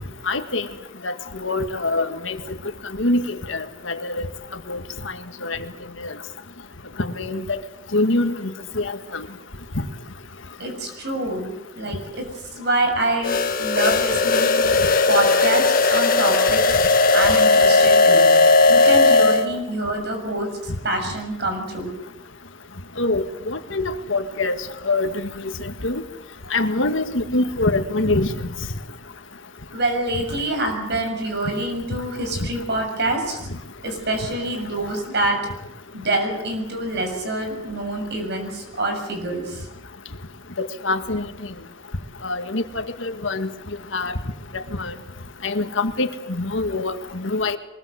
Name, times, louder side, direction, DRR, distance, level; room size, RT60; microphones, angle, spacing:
voice 1, 0.3-0.7 1.0-2.4 3.0-4.3 4.7-4.8 5.4-5.6 6.0-6.1 7.0-7.6 7.9-8.5 8.8-9.3 23.0-24.5 24.8-25.1 25.6-26.0 26.5-28.3 40.6-41.3 42.2-43.5 43.9-44.1 44.5-44.9 45.4-47.6, left 2 dB, 70° left, 8 dB, 1.8 m, -24 dB
voice 2, 10.6-14.7 15.1-16.7 17.1-18.3 18.7-21.9 29.7-33.4 33.8-35.4 35.9-39.7, right 1 dB, 60° right, 4 dB, 6.8 m, -26 dB
sound 1, 13.2-19.5, left 3 dB, 45° left, 1.6 m, -16 dB
23.0 x 21.5 x 8.0 m, 0.91 s
head